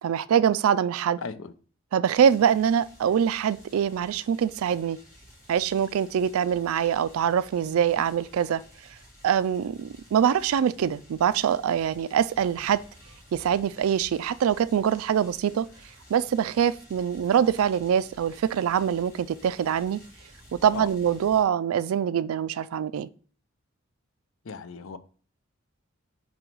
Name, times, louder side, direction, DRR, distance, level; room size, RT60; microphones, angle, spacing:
voice 1, 0.0-1.2 1.9-5.0 5.5-8.6 9.2-12.8 13.3-15.7 16.1-20.0 20.5-23.1, right 8 dB, 85° right, 0.3 m, -24 dB
voice 2, 1.2-1.5 20.7-20.9 24.4-25.0, left 5 dB, 70° left, 0.5 m, -36 dB
sound 1, 2.1-21.4, equal, 15° left, 2.3 m, -53 dB
5.5 x 3.9 x 4.5 m
head